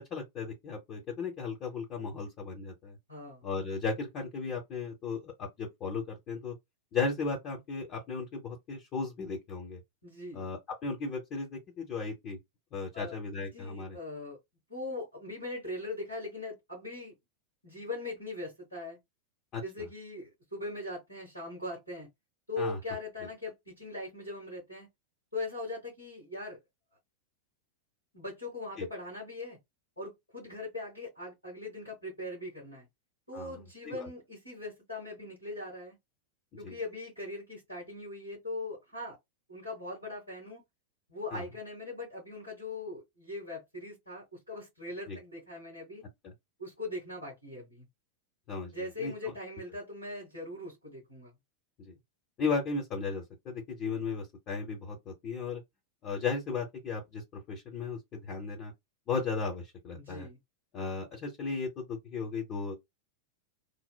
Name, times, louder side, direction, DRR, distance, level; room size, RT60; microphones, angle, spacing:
voice 1, 0.0-3.0 3.4-6.5 6.9-9.8 10.3-12.4 12.7-14.0 19.5-19.9 22.6-22.8 28.8-28.9 33.3-33.5 33.8-34.1 36.6-36.8 41.3-41.4 45.1-45.2 48.5-48.7 49.0-49.1 51.8-51.9 52.4-55.6 56.0-57.2 57.5-58.7 59.1-60.3 60.7-62.7, left 4 dB, 35° left, 0.9 m, -35 dB
voice 2, 3.1-3.4 10.0-10.5 12.9-14.4 14.7-17.1 17.6-19.0 19.6-22.1 22.5-24.9 25.3-26.6 28.1-29.6 30.0-32.9 33.3-36.0 36.6-39.2 39.5-40.6 41.1-46.0 46.6-47.9 48.7-51.3 60.0-60.4, left 2 dB, 85° left, 2.0 m, -40 dB
3.3 x 2.0 x 2.3 m
figure-of-eight pair, 90°, 0 cm